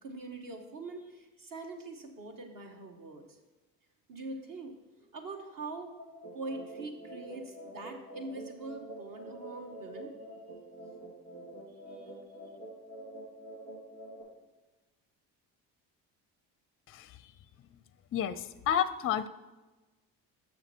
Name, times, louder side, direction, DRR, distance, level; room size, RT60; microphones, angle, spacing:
voice 1, 0.0-3.4 4.1-5.9 6.3-10.1 11.9-12.1, right 2 dB, 50° right, 4 dB, 1.6 m, -43 dB
sound 1, 6.0-14.2, right 1 dB, 90° right, 2.6 m, -46 dB
voice 2, 18.1-19.3, left 9 dB, 30° left, 14 dB, 0.5 m, -30 dB
6.8 x 6.6 x 4.5 m, 1.2 s
supercardioid pair, 65°, 42 cm